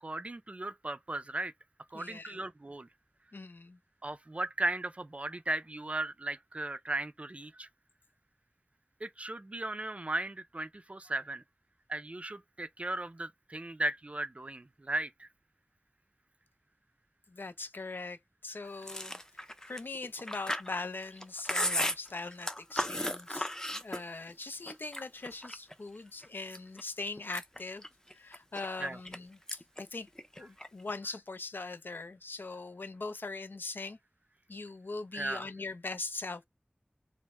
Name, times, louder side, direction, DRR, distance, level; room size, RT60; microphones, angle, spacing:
voice 1, 0.0-1.5 1.9-2.9 4.0-7.7 9.0-11.4 11.9-15.3 28.8-29.0 35.1-35.5, right 2 dB, 40° right, 0.4 m, -36 dB
voice 2, 1.9-2.4 3.3-3.8 17.3-18.2 18.4-19.1 19.7-23.5 23.7-27.8 28.1-30.1 30.4-34.0 34.5-36.4, left 3 dB, 85° left, 0.4 m, -41 dB
Chewing mastication, 18.8-24.3 24.7-25.7 26.2-26.8 27.2-29.2 29.5-29.8 30.1-30.9, left 1 dB, 15° left, 0.5 m, -35 dB
3.3 x 2.1 x 2.9 m
wide cardioid pair, 50°, 3 cm